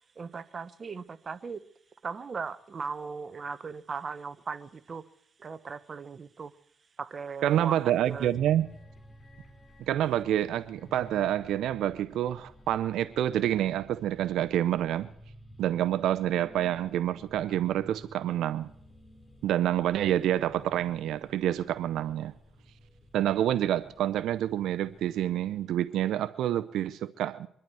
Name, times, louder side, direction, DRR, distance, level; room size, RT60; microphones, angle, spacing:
voice 1, 0.2-1.6 2.0-5.0 5.4-6.5 7.0-8.3, right 5 dB, 40° right, 0.9 m, -38 dB
voice 2, 7.4-8.7 9.9-15.1 15.6-18.7 19.4-22.3 23.1-27.5, right 12 dB, 80° right, 0.5 m, -28 dB
sound 1, 8.0-25.8, equal, 25° left, 2.7 m, -53 dB
24.0 x 12.0 x 4.7 m
cardioid pair, 90°, 0 cm